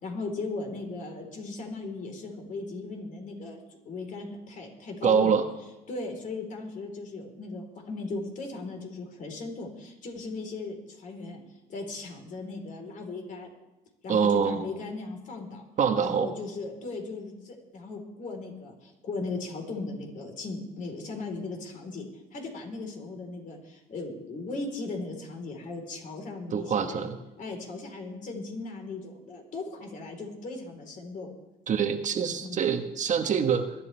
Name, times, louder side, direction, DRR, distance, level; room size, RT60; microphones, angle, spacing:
voice 1, 0.0-5.4 5.9-11.4 11.7-13.5 14.0-15.7 16.0-22.1 22.3-27.1 27.4-31.3 32.4-32.7, left 3 dB, 50° left, 2 dB, 4.0 m, -37 dB
voice 2, 5.0-5.5 14.1-14.7 15.8-16.3 26.5-27.2 31.7-33.7, right 7 dB, 45° right, 6 dB, 1.3 m, -25 dB
22.5 x 12.0 x 3.4 m, 1.0 s
cardioid pair, 110°, 17 cm